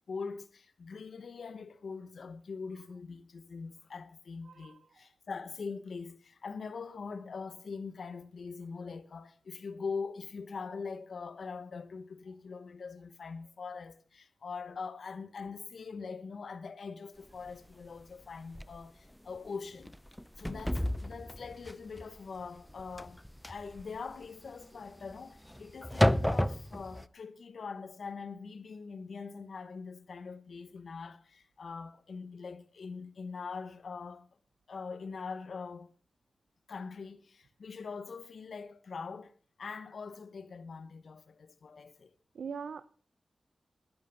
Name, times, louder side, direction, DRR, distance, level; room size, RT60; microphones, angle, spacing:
voice 1, 0.1-19.9 20.4-23.2 23.4-34.3 34.7-35.9 36.7-39.3 39.6-42.1, left 5 dB, 80° left, 1.0 m, -43 dB
voice 2, 4.5-4.8 42.3-42.8, right 6 dB, 90° right, 0.5 m, -41 dB
sound 1, 17.5-17.6 18.0-18.1 18.6-18.8 19.2-19.5 19.8-27.1, equal, 5° left, 0.6 m, -32 dB
11.0 x 10.5 x 5.6 m
cardioid pair, 55°, 0 cm